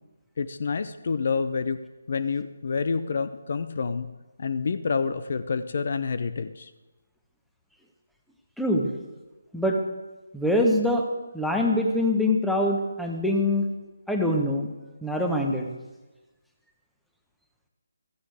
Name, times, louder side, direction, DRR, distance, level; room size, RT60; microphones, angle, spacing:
voice 1, 0.4-1.8 2.1-4.1 4.4-6.7, left 5 dB, 50° left, 12 dB, 0.6 m, -28 dB
voice 2, 8.6-8.9 9.5-9.8 10.3-11.1 11.3-13.6 14.1-14.7 15.0-15.7, left 1 dB, ahead, 1 dB, 1.2 m, -24 dB
15.5 x 14.0 x 3.5 m, 1.1 s
figure-of-eight pair, 150°, 0 cm